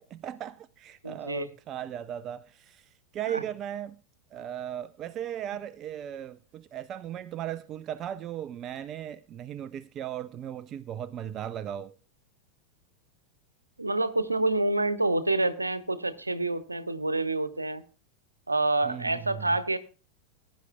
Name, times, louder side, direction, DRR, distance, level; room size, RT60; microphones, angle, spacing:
voice 1, 0.1-4.0 4.3-11.9 18.8-19.4, right 10 dB, 30° right, 0.5 m, -37 dB
voice 2, 1.0-1.5 3.3-3.4 13.8-17.8 18.5-19.8, right 2 dB, 80° right, 1.0 m, -27 dB
21.0 x 11.0 x 2.3 m
figure-of-eight pair, 90°, 0 cm